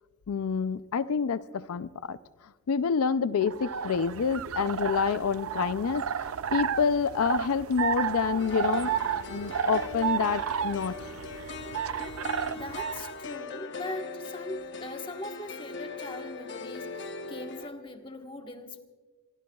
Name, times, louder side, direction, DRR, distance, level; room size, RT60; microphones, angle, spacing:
voice 1, 0.3-2.2 2.7-8.9 9.3-10.9, left 6 dB, 90° left, 0.4 m, -28 dB
sound 1, 3.4-13.2, right 7 dB, 80° right, 0.5 m, -32 dB
sound 2, 8.4-17.7, left 3 dB, 55° left, 1.0 m, -40 dB
voice 2, 12.4-18.8, left 1 dB, 25° left, 1.3 m, -41 dB
26.0 x 23.0 x 2.3 m
head